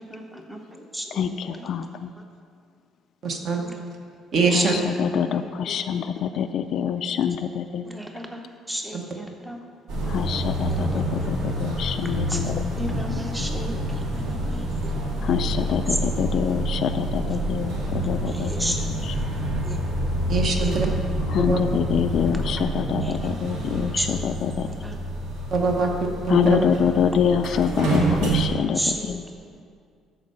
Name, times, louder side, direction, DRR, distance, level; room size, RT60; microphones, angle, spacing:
voice 1, 0.0-1.7 3.6-3.8 4.3-6.4 7.8-9.6 10.1-11.6 12.3-15.8 17.9-19.3 19.6-20.1 20.6-20.7 22.8-25.0 28.7-29.6, equal, 5° right, 3 dB, 0.7 m, -35 dB
voice 2, 1.1-2.1 4.5-8.0 10.0-12.7 15.2-19.1 21.3-24.7 26.3-29.2, left 8 dB, 45° left, 9 dB, 0.3 m, -26 dB
voice 3, 3.2-3.6 4.3-4.7 8.9-9.0 20.3-20.9 21.5-21.6 25.5-26.6, right 4 dB, 40° right, 3 dB, 1.0 m, -23 dB
sound 1, 9.9-28.5, right 1 dB, 75° right, 1.8 m, -27 dB
12.5 x 4.5 x 5.4 m, 2.2 s
cardioid pair, 175°, 0 cm